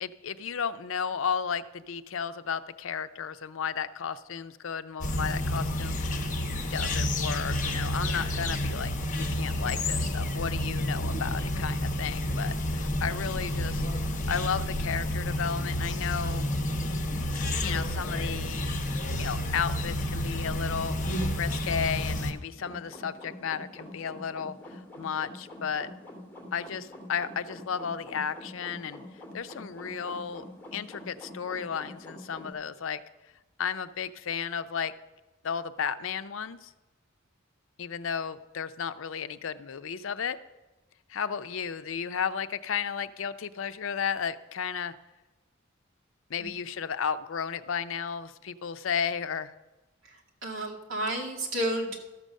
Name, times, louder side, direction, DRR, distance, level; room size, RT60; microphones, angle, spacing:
voice 1, 0.0-6.3 6.7-16.5 17.6-18.7 19.2-25.9 26.5-29.0 29.3-30.4 30.7-33.0 33.6-34.9 35.4-36.7 37.8-40.4 41.1-44.9 46.3-49.5, left 7 dB, 75° left, 12 dB, 0.5 m, -33 dB
sound 1, 5.0-22.3, left 1 dB, 40° left, 0.9 m, -30 dB
sound 2, 22.5-32.5, left 1 dB, 10° left, 2.5 m, -46 dB
voice 2, 50.0-52.0, right 1 dB, 70° right, -1 dB, 2.0 m, -32 dB
13.0 x 6.7 x 6.3 m, 1.1 s
head